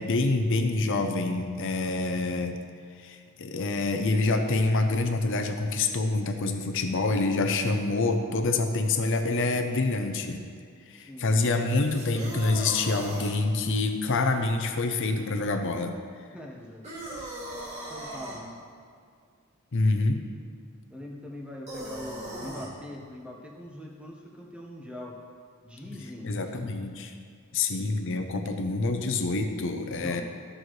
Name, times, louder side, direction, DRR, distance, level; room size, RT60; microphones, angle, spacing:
voice 1, 0.0-2.6 3.0-10.4 10.9-15.9 19.7-20.2 26.2-27.1 27.5-30.2, left 3 dB, 60° left, 5 dB, 0.6 m, -26 dB
sound 1, 11.8-13.4 16.8-18.4 21.7-22.7, right 1 dB, 30° right, 2.0 m, -38 dB
voice 2, 16.3-16.8 17.9-18.6 20.9-25.1 25.6-26.7 27.6-28.0 28.5-28.7 30.0-30.2, left 1 dB, 5° right, -2 dB, 1.1 m, -42 dB
14.0 x 6.3 x 3.2 m, 2.2 s
head